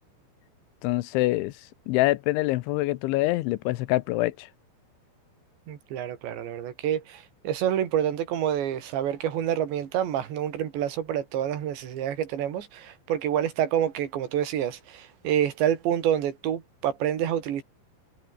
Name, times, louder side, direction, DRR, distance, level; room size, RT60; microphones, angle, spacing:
voice 1, 0.8-1.5 1.9-4.5, left 19 dB, 85° left, 3.2 m, -25 dB
voice 2, 5.7-17.6, right 10 dB, 70° right, 4.7 m, -28 dB
omnidirectional pair, 5.4 m